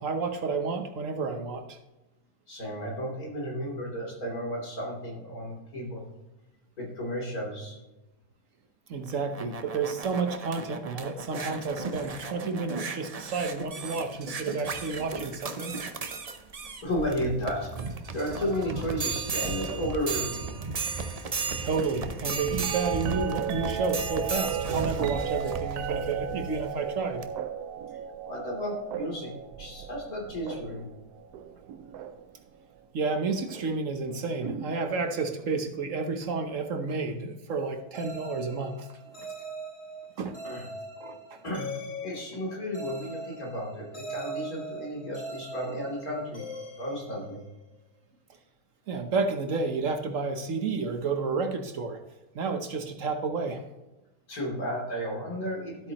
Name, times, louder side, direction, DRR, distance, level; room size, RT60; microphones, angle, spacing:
voice 1, 0.0-1.8 8.9-15.8 21.6-27.3 32.9-38.9 39.2-39.3 40.2-40.3 41.0-41.4 48.9-52.0 52.3-53.6, right 4 dB, 60° right, 5 dB, 1.2 m, -31 dB
voice 2, 2.5-6.1 6.8-7.8 16.8-17.7 18.1-20.5 28.2-30.9 40.4-40.7 41.4-41.7 42.0-46.5 46.8-47.4 54.3-55.9, equal, 70° left, -2 dB, 3.6 m, -33 dB
sound 1, 9.0-26.7 27.2-27.3, right 4 dB, 40° right, 0.5 m, -35 dB
sound 2, 22.2-32.4 33.3-33.7 34.4-35.4 37.2-37.3, right 9 dB, 80° right, 1.1 m, -36 dB
sound 3, 37.9-47.8, right 1 dB, 45° left, 2.2 m, -41 dB
13.0 x 8.5 x 3.0 m, 1.0 s
omnidirectional pair, 1.6 m